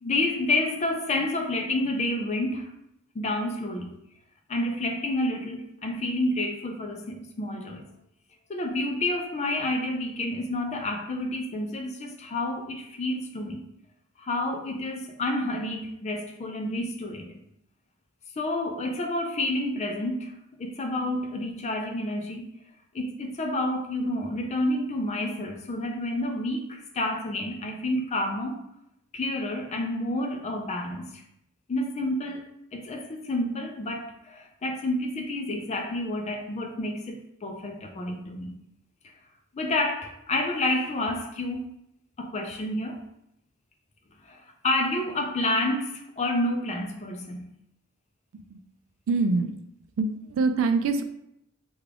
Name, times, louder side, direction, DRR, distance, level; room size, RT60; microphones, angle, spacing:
voice 1, 0.0-2.7 3.1-4.0 4.5-7.9 8.5-13.6 14.2-17.4 18.4-22.5 22.9-28.6 29.1-31.2 31.7-32.4 32.7-38.6 39.5-41.6 42.2-43.0 44.2-47.5, left 1 dB, 30° left, 4 dB, 0.4 m, -29 dB
voice 2, 49.1-49.6 50.0-51.0, right 3 dB, 65° right, 8 dB, 0.3 m, -25 dB
3.5 x 2.3 x 3.3 m, 0.78 s
head